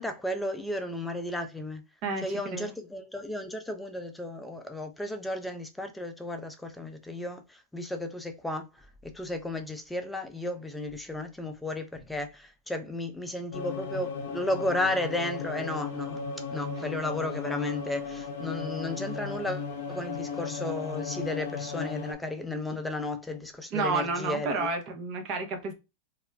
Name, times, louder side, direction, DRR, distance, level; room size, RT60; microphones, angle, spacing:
voice 1, 0.0-1.8 2.2-16.2 16.5-24.7, left 1 dB, 5° left, 0.4 m, -34 dB
voice 2, 2.0-2.6 23.7-25.7, right 4 dB, 45° right, 0.7 m, -30 dB
sound 1, 13.5-22.1, left 5 dB, 65° left, 0.5 m, -36 dB
2.3 x 2.1 x 3.1 m
hypercardioid pair, 110°, 0 cm